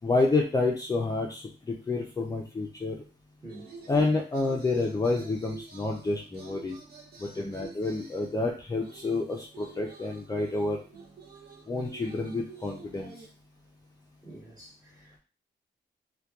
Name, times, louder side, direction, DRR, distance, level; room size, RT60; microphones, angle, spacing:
voice 1, 0.0-3.0 3.9-6.8 7.2-10.8 11.7-13.1, left 3 dB, 20° left, 0.4 m, -29 dB
sound 1, 3.5-8.4 8.8-13.3, right 4 dB, 55° right, 0.7 m, -48 dB
voice 2, 14.2-15.2, right 1 dB, 20° right, 1.2 m, -46 dB
2.7 x 2.2 x 2.3 m
cardioid pair, 90°, 19 cm